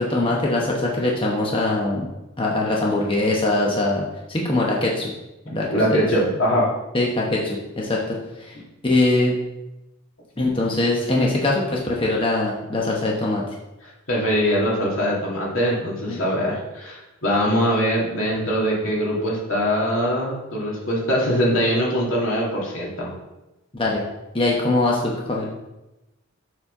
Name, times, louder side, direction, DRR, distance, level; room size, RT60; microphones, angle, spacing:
voice 1, 0.0-2.1 2.4-5.1 5.5-6.1 6.9-8.6 8.8-9.3 10.4-13.4 16.1-16.2 23.7-24.0 24.3-25.5, left 2 dB, 25° left, -3 dB, 0.9 m, -22 dB
voice 2, 5.5-6.7 14.1-23.1, equal, 75° left, -3 dB, 2.4 m, -22 dB
7.1 x 4.2 x 5.4 m, 1.0 s
head